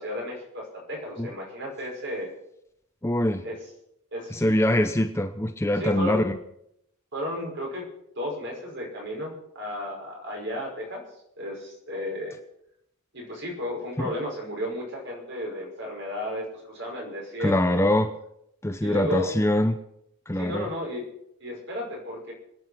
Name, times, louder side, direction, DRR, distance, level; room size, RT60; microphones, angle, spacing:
voice 1, 0.0-2.4 3.4-3.6 4.1-4.4 5.8-6.3 7.1-7.9 8.2-11.0 11.4-12.4 13.1-17.9 18.8-19.3 20.4-21.0 21.4-22.3, left 1 dB, 60° right, -1 dB, 5.7 m, -33 dB
voice 2, 3.0-3.4 4.3-6.4 14.0-14.1 17.4-18.1 18.6-19.8 20.3-20.7, left 1 dB, 15° left, 7 dB, 0.7 m, -23 dB
25.5 x 9.5 x 5.8 m, 0.77 s
head